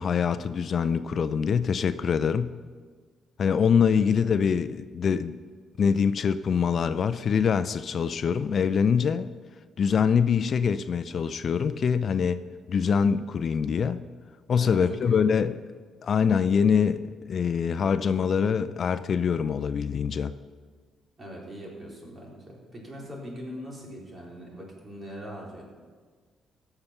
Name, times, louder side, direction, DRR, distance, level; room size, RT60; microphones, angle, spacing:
voice 1, 0.0-2.5 3.4-5.3 5.8-9.3 9.8-12.4 12.7-14.0 14.5-15.6 16.0-20.3, left 6 dB, 50° left, 12 dB, 0.4 m, -24 dB
voice 2, 14.6-15.3 21.2-25.6, equal, 30° right, -3 dB, 4.1 m, -41 dB
16.5 x 6.8 x 5.8 m, 1.5 s
cardioid pair, 90°, 0 cm